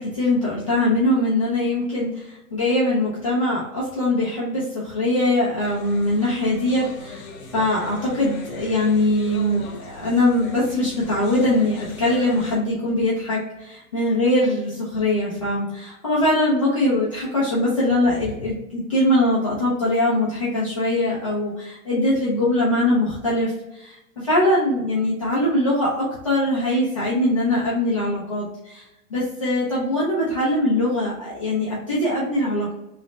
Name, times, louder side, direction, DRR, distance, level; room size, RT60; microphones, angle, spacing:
voice 1, 0.0-7.3 7.5-28.8 29.1-32.7, left 1 dB, 25° left, -8 dB, 0.3 m, -22 dB
sound 1, 5.6-12.6, left 3 dB, 65° left, 0.8 m, -40 dB
3.2 x 2.0 x 3.7 m, 0.90 s
hypercardioid pair, 160°, 45 cm